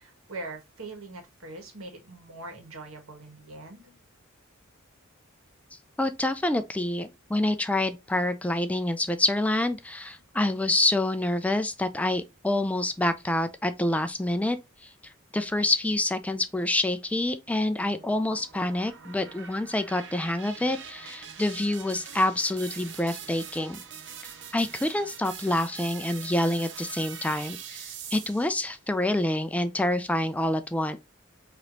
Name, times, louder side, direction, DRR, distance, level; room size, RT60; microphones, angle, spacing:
voice 1, 0.0-3.9, right 2 dB, 85° right, 1.5 m, -42 dB
voice 2, 6.0-23.8 24.5-31.0, left 1 dB, 5° left, 0.3 m, -27 dB
sound 1, 17.5-28.7, right 7 dB, 60° right, 0.7 m, -43 dB
4.8 x 3.0 x 2.6 m
head